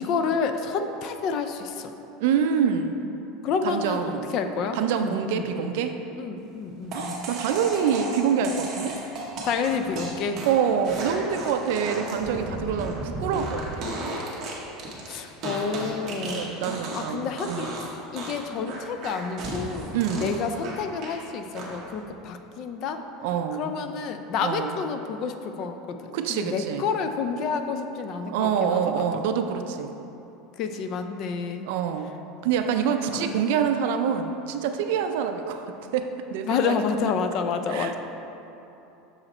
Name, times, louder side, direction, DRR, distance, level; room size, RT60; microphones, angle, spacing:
voice 1, 0.0-1.9 3.4-4.0 4.3-5.7 6.2-7.2 9.4-10.4 15.1-17.8 18.1-19.9 20.2-23.0 23.6-29.2 30.6-31.7 33.1-33.4 36.5-38.0, left 5 dB, 35° left, 8 dB, 0.3 m, -29 dB
voice 2, 2.2-3.1 3.6-4.3 4.7-5.9 6.9-9.0 10.4-14.2 16.2-17.7 19.9-20.4 23.2-23.7 24.4-24.8 26.1-26.9 28.3-29.9 31.6-32.1 32.4-36.7 37.7-38.0, right 7 dB, 60° right, 7 dB, 0.4 m, -26 dB
sound 1, 6.9-17.1 17.4-17.9 18.2-21.2 21.6-22.0, right 2 dB, 30° right, 1.0 m, -34 dB
6.4 x 4.9 x 4.3 m, 3.0 s
cardioid pair, 180°, 0 cm